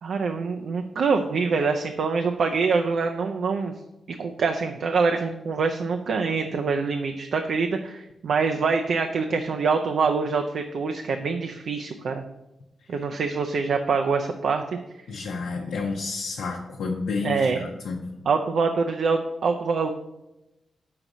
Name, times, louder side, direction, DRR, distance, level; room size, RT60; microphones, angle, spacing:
voice 1, 0.0-3.7 4.1-12.2 12.9-14.6 17.2-17.6 18.3-19.9, right 4 dB, 70° right, 5 dB, 0.4 m, -25 dB
voice 2, 15.1-18.0, left 4 dB, 85° left, -1 dB, 0.7 m, -30 dB
5.8 x 3.9 x 6.0 m, 0.94 s
cardioid pair, 80°, 0 cm